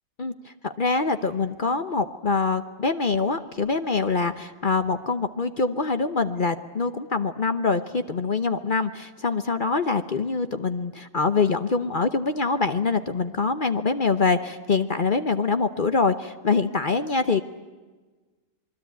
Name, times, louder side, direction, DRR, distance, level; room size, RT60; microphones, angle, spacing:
voice 1, 0.2-17.4, left 4 dB, 40° left, 10 dB, 1.0 m, -24 dB
27.0 x 21.5 x 9.4 m, 1.3 s
omnidirectional pair, 1.4 m